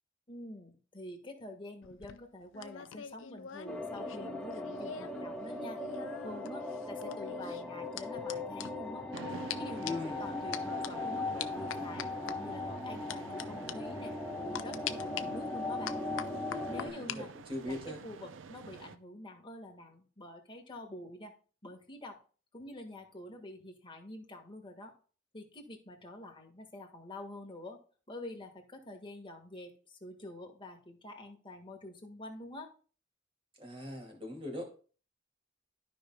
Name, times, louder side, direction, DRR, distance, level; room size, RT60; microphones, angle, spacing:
voice 1, 0.3-5.8 6.2-9.1 9.6-14.1 14.4-16.0 16.7-17.3 17.7-17.8 18.0-21.3 21.6-22.2 22.5-24.9 25.3-27.8 28.1-32.7, left 1 dB, 25° left, 2 dB, 1.6 m, -47 dB
sound 1, 1.8-5.2 5.5-9.2 9.5-9.6 9.9-10.1 10.5-10.9 11.4-12.4 13.1-13.4 13.7-13.8 14.5-15.2 15.9-17.2 17.5-17.9, left 9 dB, 75° left, 0.5 m, -43 dB
sound 2, 3.7-16.9, left 2 dB, 5° left, 1.0 m, -39 dB
sound 3, 9.1-19.0, right 5 dB, 75° right, 0.5 m, -49 dB
voice 2, 9.8-10.2 16.8-18.0 33.6-34.7, left 1 dB, 30° right, 1 dB, 2.3 m, -40 dB
13.0 x 5.3 x 2.2 m, 0.39 s
head